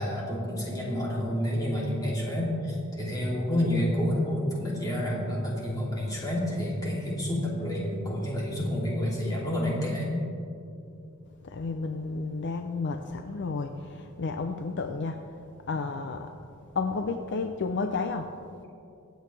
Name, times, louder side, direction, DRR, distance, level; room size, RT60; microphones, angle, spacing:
voice 1, 0.0-10.2, left 1 dB, 15° left, -5 dB, 2.8 m, -29 dB
voice 2, 11.4-15.2 15.7-16.3 16.7-18.3, left 4 dB, 55° left, 6 dB, 0.5 m, -31 dB
24.0 x 8.0 x 3.4 m, 2.6 s
head